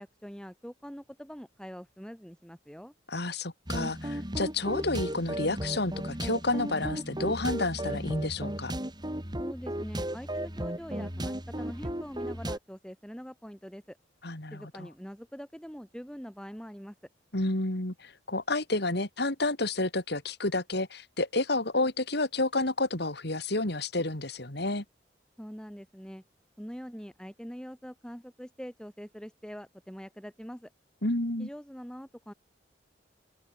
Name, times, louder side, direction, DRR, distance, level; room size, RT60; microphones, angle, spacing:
voice 1, 0.0-2.9 9.4-14.0 14.5-16.9 25.4-26.2 26.6-30.7 31.4-32.3, equal, 5° left, 6.1 m, -44 dB
voice 2, 3.1-8.7 14.2-14.9 17.3-24.8 31.0-31.5, left 2 dB, 60° left, 3.3 m, -30 dB
sound 1, 3.7-12.6, right 1 dB, 25° right, 6.9 m, -35 dB
open air
head